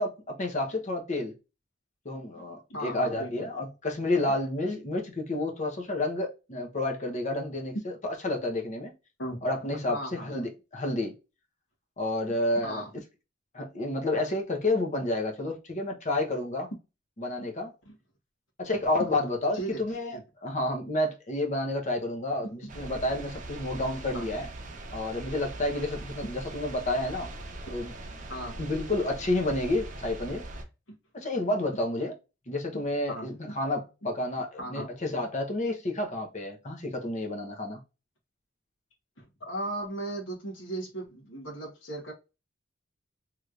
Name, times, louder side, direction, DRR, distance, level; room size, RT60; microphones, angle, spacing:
voice 1, 0.0-1.3 2.0-8.9 9.4-11.1 12.0-12.8 13.5-16.7 17.2-17.7 18.6-24.5 24.9-27.3 27.7-27.9 28.6-30.4 31.1-32.1 32.5-37.8, left 2 dB, 40° left, 0.9 m, -30 dB
voice 2, 2.7-3.3 9.2-9.4 9.9-10.5 12.3-12.9 17.8-17.9 19.5-19.8 20.1-20.2 22.4-22.7 24.1-24.3 28.3-28.6 32.7-33.6 34.6-34.9 39.4-42.1, right 1 dB, 85° left, 1.3 m, -37 dB
sound 1, 22.7-30.6, right 2 dB, 40° right, 0.8 m, -41 dB
3.1 x 3.1 x 2.4 m
head